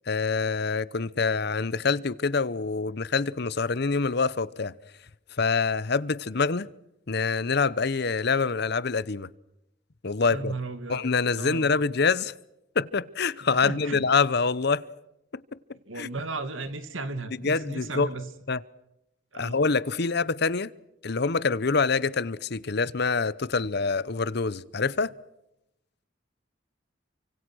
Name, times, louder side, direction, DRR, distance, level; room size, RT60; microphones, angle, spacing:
voice 1, 0.1-4.7 5.4-6.7 7.1-9.3 10.0-10.5 10.9-12.3 12.8-14.8 16.0-16.1 17.4-18.1 18.5-18.6 19.4-20.7 21.0-25.1, left 4 dB, 55° left, 0.8 m, -25 dB
voice 2, 10.3-11.1 11.4-11.7 13.6-14.0 15.9-18.3 19.3-19.6, right 3 dB, 85° right, 2.4 m, -35 dB
29.5 x 25.5 x 6.3 m
head